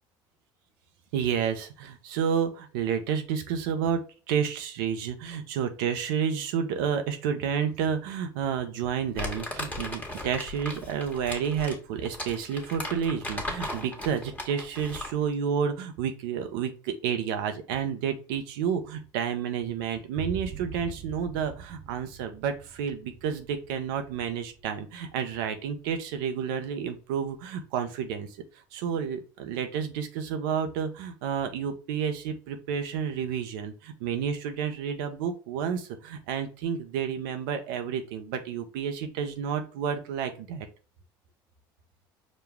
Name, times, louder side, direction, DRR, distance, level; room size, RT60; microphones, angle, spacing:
voice 1, 1.1-4.0 4.3-28.3 28.7-40.7, right 7 dB, 75° right, 6 dB, 0.7 m, -30 dB
Crumpling crinkling, 9.2-15.2, left 1 dB, 15° left, 1.4 m, -37 dB
sound 1, 20.2-27.5, right 6 dB, 40° right, 0.8 m, -44 dB
5.1 x 2.2 x 3.5 m, 0.35 s
hypercardioid pair, 70°, 11 cm